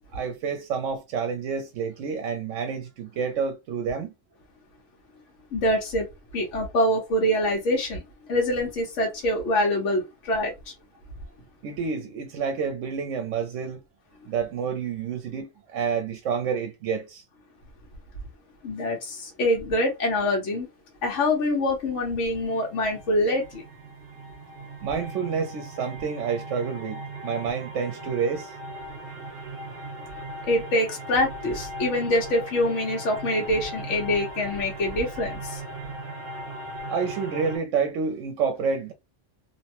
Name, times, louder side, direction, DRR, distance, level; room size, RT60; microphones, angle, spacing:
voice 1, 0.1-4.1 11.6-13.8 14.3-17.2 24.8-28.5 36.9-38.9, right 6 dB, 80° right, 0.9 m, -29 dB
voice 2, 5.5-6.1 6.3-8.0 8.3-10.7 18.6-20.7 21.0-23.6 30.5-35.6, left 1 dB, 75° left, 1.2 m, -25 dB
sound 1, 22.2-37.6, right 1 dB, 50° right, 1.0 m, -38 dB
2.8 x 2.1 x 2.9 m
omnidirectional pair, 1.3 m